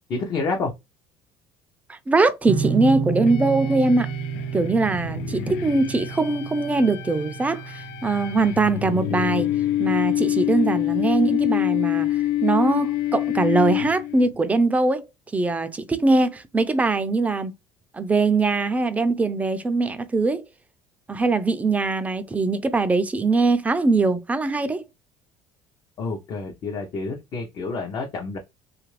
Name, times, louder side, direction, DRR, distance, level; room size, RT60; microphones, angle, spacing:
voice 1, 0.1-0.7 26.0-28.4, left 3 dB, 45° left, 0.7 m, -28 dB
voice 2, 1.9-4.1 4.5-9.5 9.8-15.1 15.3-17.5 17.9-20.4 21.1-24.8, right 3 dB, 15° right, 0.4 m, -22 dB
sound 1, 2.4-9.7, right 6 dB, 70° right, 0.6 m, -31 dB
sound 2, 3.3-14.3, left 13 dB, 85° left, 0.4 m, -26 dB
2.7 x 2.4 x 3.2 m
cardioid pair, 110°, 10 cm